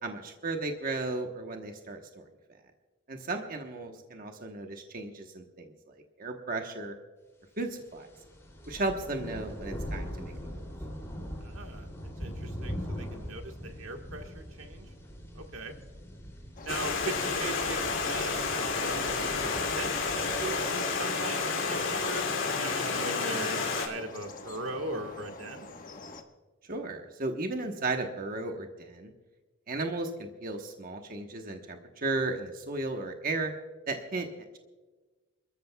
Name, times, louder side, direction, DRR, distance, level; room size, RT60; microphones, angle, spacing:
voice 1, 0.0-2.2 3.1-5.7 6.2-6.9 7.6-8.1 8.7-10.6 26.7-29.1 29.7-33.5 33.9-34.3, right 2 dB, 45° right, 4 dB, 1.1 m, -35 dB
sound 1, 7.9-20.6, equal, 15° left, 2.8 m, -41 dB
voice 2, 11.4-11.9 12.2-14.9 15.3-15.7 16.6-22.3 22.5-25.7, right 2 dB, 85° right, 4 dB, 1.5 m, -40 dB
sound 2, 16.6-26.2, left 3 dB, 45° left, 1.2 m, -45 dB
Stream, 16.7-23.9, left 4 dB, 75° left, 2.7 m, -30 dB
28.5 x 13.5 x 2.3 m, 1.3 s
head